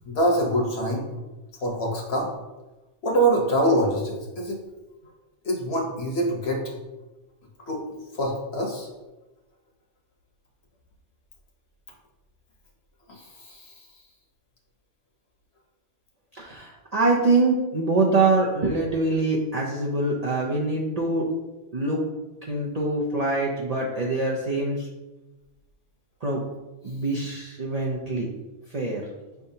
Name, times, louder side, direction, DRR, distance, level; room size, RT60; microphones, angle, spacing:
voice 1, 0.0-1.1 1.6-2.3 3.0-4.6 5.4-6.6 7.7-7.8 8.1-8.9 13.1-13.8, right 1 dB, 60° left, -1 dB, 1.2 m, -25 dB
voice 2, 16.3-21.3 21.7-22.0 22.5-24.9 26.2-26.4 26.8-28.3 28.7-29.0, right 2 dB, 50° right, -4 dB, 0.5 m, -24 dB
5.5 x 3.5 x 2.7 m, 1.1 s
omnidirectional pair, 1.3 m